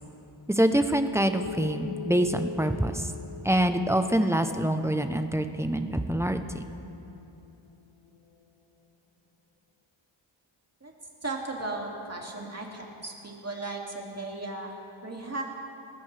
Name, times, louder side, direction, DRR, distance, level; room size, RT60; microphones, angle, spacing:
voice 1, 0.5-3.1 3.4-6.6, right 1 dB, 5° right, 7 dB, 0.7 m, -25 dB
sound 1, 1.4-8.3, left 5 dB, 75° left, 1.0 m, -42 dB
voice 2, 11.2-15.4, right 2 dB, 30° right, -1 dB, 2.4 m, -36 dB
28.5 x 13.0 x 3.4 m, 3.0 s
wide cardioid pair, 85°, 49 cm